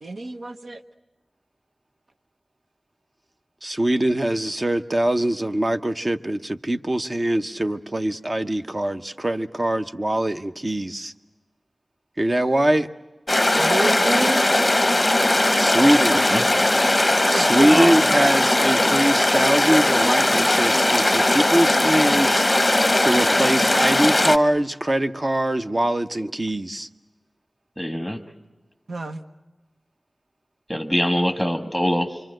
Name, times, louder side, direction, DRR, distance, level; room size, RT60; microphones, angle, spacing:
voice 1, 0.0-0.8 13.6-14.5 17.3-17.8 28.9-29.2, right 2 dB, 80° right, 7 dB, 1.1 m, -29 dB
voice 2, 3.6-11.1 12.2-12.9 15.6-16.2 17.3-22.5 23.0-26.9, right 1 dB, 35° right, 8 dB, 0.8 m, -22 dB
sound 1, 13.3-24.4, left 1 dB, 20° left, 0.8 m, -19 dB
voice 3, 16.1-16.4 17.7-18.2 27.8-28.2 30.7-32.2, equal, 5° right, 6 dB, 1.6 m, -23 dB
26.5 x 24.5 x 7.7 m, 1.1 s
wide cardioid pair, 85°, 0 cm